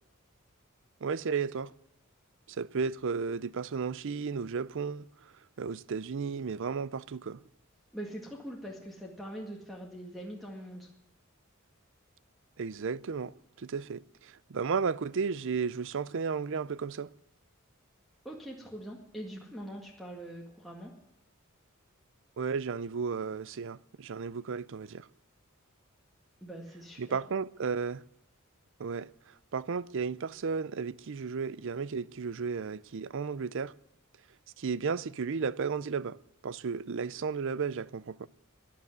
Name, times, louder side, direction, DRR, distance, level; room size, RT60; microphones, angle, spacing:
voice 1, 1.0-1.7 2.5-5.0 5.6-7.4 12.6-17.1 22.4-25.1 27.0-28.0 28.8-29.1 29.5-33.7 34.6-36.2 36.4-38.3, right 5 dB, 65° right, 0.5 m, -34 dB
voice 2, 7.9-10.9 18.2-20.9 26.4-27.2, equal, ahead, 2.0 m, -43 dB
14.0 x 10.5 x 9.5 m
head